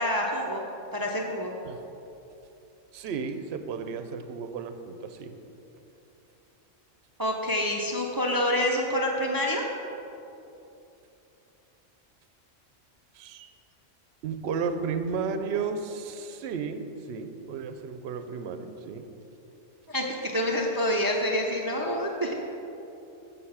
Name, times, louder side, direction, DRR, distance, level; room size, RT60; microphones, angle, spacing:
voice 1, 0.0-1.5 7.2-9.7 19.9-22.3, left 1 dB, 30° right, 0 dB, 0.4 m, -27 dB
voice 2, 2.9-5.4 13.1-13.5 14.2-19.1, right 5 dB, 65° right, 8 dB, 0.8 m, -33 dB
7.0 x 6.6 x 5.6 m, 2.9 s
omnidirectional pair, 1.3 m